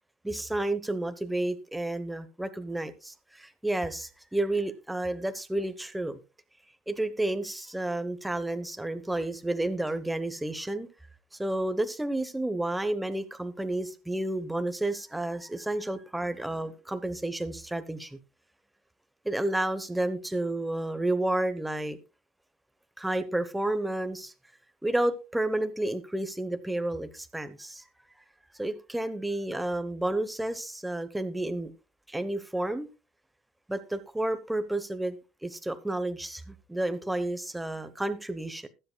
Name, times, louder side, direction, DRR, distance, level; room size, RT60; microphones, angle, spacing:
voice 1, 0.2-6.2 6.9-10.9 11.4-18.2 19.2-22.0 23.0-24.3 24.8-27.8 28.6-31.7 32.1-32.9 33.7-35.2 35.4-38.7, right 1 dB, 5° right, 0.9 m, -31 dB
20.5 x 7.7 x 2.2 m
cardioid pair, 140°, 0 cm